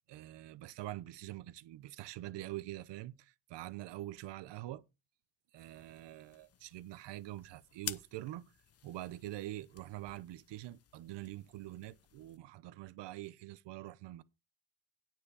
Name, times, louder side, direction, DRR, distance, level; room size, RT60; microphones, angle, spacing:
voice 1, 0.1-4.8 5.5-8.5 8.8-14.2, right 15 dB, 60° right, 1.0 m, -45 dB
sound 1, 5.6-12.4, left 8 dB, 30° left, 0.8 m, -51 dB
9.5 x 7.3 x 4.8 m
hypercardioid pair, 65°, 48 cm